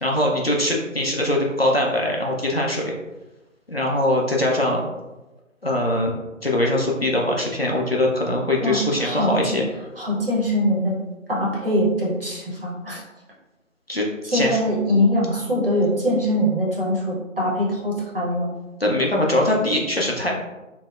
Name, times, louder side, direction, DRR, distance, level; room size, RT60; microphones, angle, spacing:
voice 1, 0.0-3.0 3.7-4.9 5.6-6.2 6.4-9.6 13.9-14.6 18.8-20.3, left 1 dB, 50° left, -1 dB, 0.4 m, -22 dB
voice 2, 8.6-9.6 10.0-10.9 11.3-13.0 14.2-18.5, equal, 45° right, -4 dB, 0.8 m, -22 dB
3.8 x 2.0 x 2.3 m, 1.0 s
figure-of-eight pair, 160°, 40 cm